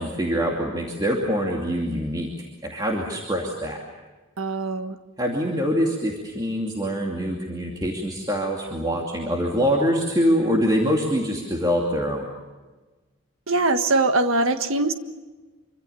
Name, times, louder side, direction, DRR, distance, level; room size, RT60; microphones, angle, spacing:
voice 1, 0.0-2.3 2.6-3.8 5.2-12.3, equal, 20° right, -1 dB, 2.6 m, -24 dB
voice 2, 4.4-4.9 13.5-14.9, right 2 dB, 80° right, 8 dB, 1.6 m, -22 dB
26.0 x 25.0 x 7.1 m, 1.3 s
head